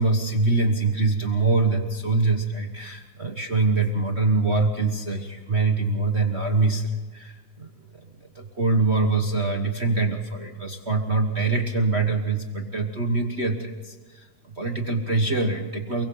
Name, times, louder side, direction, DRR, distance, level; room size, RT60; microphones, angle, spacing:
voice 1, 0.0-16.1, right 3 dB, 40° right, 3 dB, 0.9 m, -24 dB
29.5 x 22.5 x 3.9 m, 1.4 s
omnidirectional pair, 3.4 m